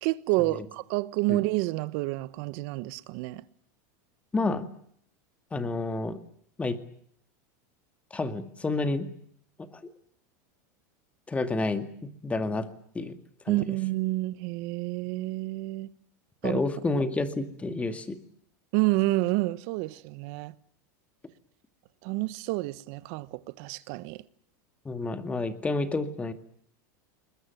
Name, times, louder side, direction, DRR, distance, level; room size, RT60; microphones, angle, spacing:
voice 1, 0.0-3.4 13.5-15.9 16.4-16.6 18.7-20.5 22.0-24.2, right 20 dB, 60° right, 1.2 m, -29 dB
voice 2, 4.3-4.7 5.5-6.2 6.6-6.8 8.1-9.1 9.7-9.9 11.3-12.7 12.9-13.2 13.5-13.7 16.4-18.2 24.8-26.3, left 3 dB, 15° left, 2.2 m, -30 dB
22.0 x 21.0 x 9.4 m
supercardioid pair, 130°, 10 cm